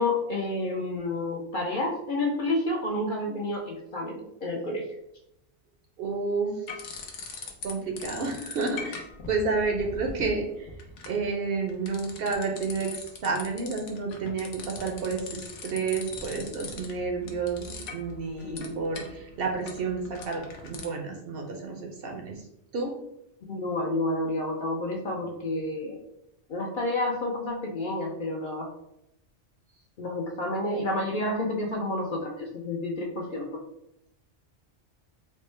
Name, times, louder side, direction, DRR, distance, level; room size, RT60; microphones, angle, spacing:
voice 1, 0.0-4.8 18.4-18.8 23.5-25.9 26.5-28.7 30.0-33.5, left 2 dB, 55° left, -1 dB, 0.6 m, -30 dB
voice 2, 6.0-7.1 7.6-10.7 11.1-22.4 22.7-22.9, right 4 dB, 60° right, 2 dB, 0.7 m, -30 dB
sound 1, 6.7-7.7 8.0-20.9, left 4 dB, 80° left, 0.9 m, -42 dB
4.3 x 2.0 x 3.1 m, 0.81 s
omnidirectional pair, 1.2 m